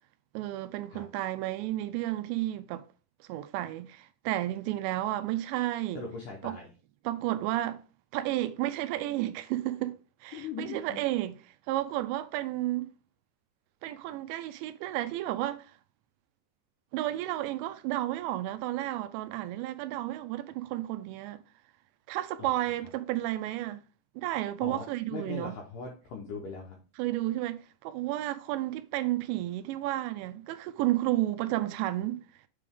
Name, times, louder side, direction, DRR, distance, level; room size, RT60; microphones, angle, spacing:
voice 1, 0.3-2.8 3.2-6.0 6.4-6.5 7.0-7.8 8.1-11.4 11.7-12.9 13.8-15.8 16.9-21.4 22.1-23.8 24.2-25.6 27.0-32.2, right 15 dB, 85° right, 2.8 m, -32 dB
voice 2, 6.0-6.7 10.3-11.0 22.4-22.5 24.6-24.8 25.1-26.8, left 5 dB, 80° left, 1.9 m, -40 dB
7.5 x 3.5 x 3.6 m
omnidirectional pair, 5.1 m